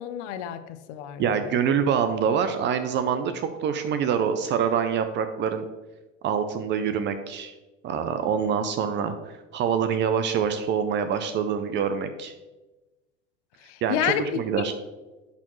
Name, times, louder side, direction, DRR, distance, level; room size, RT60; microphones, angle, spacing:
voice 1, 0.0-1.5 13.6-14.2 14.5-14.7, left 11 dB, 60° left, 10 dB, 0.7 m, -30 dB
voice 2, 1.2-5.6 6.2-7.5 7.8-12.3 13.8-14.7, right 7 dB, 30° right, 9 dB, 0.4 m, -25 dB
10.5 x 4.4 x 3.0 m, 1.1 s
supercardioid pair, 120°, 39 cm